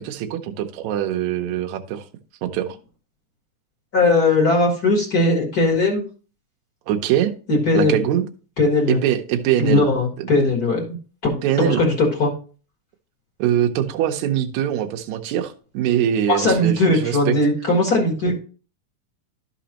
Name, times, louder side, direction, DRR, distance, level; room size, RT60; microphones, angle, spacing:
voice 1, 0.0-2.0 2.4-2.8 6.9-7.3 7.7-8.2 8.9-9.9 10.2-10.3 11.4-11.8 13.4-17.3, right 11 dB, 70° right, 4 dB, 2.0 m, -22 dB
voice 2, 3.9-6.0 7.5-8.0 8.6-9.0 9.6-11.0 11.2-12.3 16.3-18.4, left 2 dB, 40° left, 1 dB, 1.5 m, -19 dB
12.5 x 5.1 x 2.9 m, 0.38 s
omnidirectional pair, 3.8 m